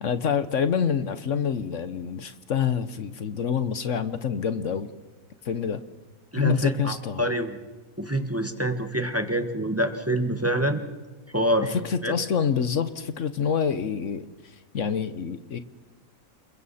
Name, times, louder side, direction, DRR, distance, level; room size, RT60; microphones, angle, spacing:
voice 1, 0.0-4.9 5.4-5.8 6.4-7.3 11.7-14.2 14.7-15.6, left 7 dB, 65° left, 12 dB, 1.2 m, -27 dB
voice 2, 6.3-6.9 7.2-7.6 8.0-10.8 11.3-11.7 12.0-12.1, right 1 dB, 10° right, 6 dB, 1.4 m, -26 dB
29.5 x 22.0 x 4.2 m, 1.3 s
omnidirectional pair, 1.5 m